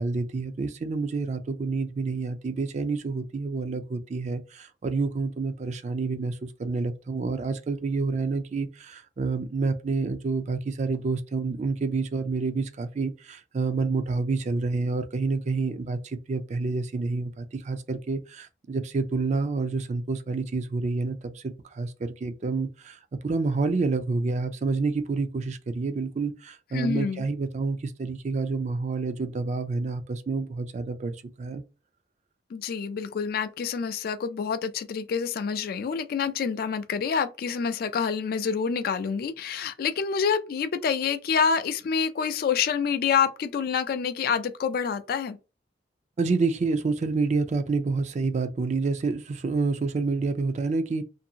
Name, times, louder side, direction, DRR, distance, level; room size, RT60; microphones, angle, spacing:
voice 1, 0.0-31.6 46.2-51.0, right 3 dB, 40° right, 0.4 m, -28 dB
voice 2, 26.7-27.2 32.5-45.4, left 6 dB, 55° left, 0.3 m, -27 dB
2.6 x 2.6 x 2.7 m
head